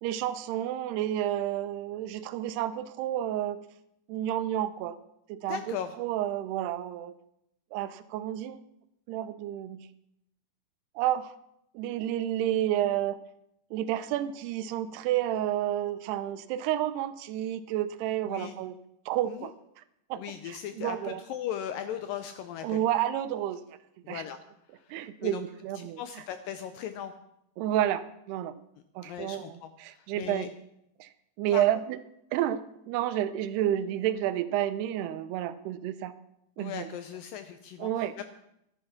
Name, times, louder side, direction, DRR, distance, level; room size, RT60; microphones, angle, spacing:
voice 1, 0.0-3.6 4.1-5.0 5.3-7.1 7.7-8.6 9.1-9.9 11.0-11.3 11.7-13.2 13.7-18.8 19.1-19.8 20.1-21.2 22.6-23.6 24.1-24.2 24.9-26.0 27.6-28.6 29.0-30.5 31.0-31.1 31.4-32.0 32.3-36.1 36.6-36.9 37.8-38.1, right 12 dB, 85° right, 13 dB, 2.7 m, -30 dB
voice 2, 5.5-5.9 18.3-18.6 19.3-19.5 20.2-22.8 24.0-24.4 24.7-25.4 25.8-27.1 29.0-30.5 31.5-31.7 36.6-38.2, left 10 dB, 80° left, 9 dB, 2.0 m, -38 dB
13.0 x 11.5 x 5.8 m, 0.79 s
omnidirectional pair, 4.6 m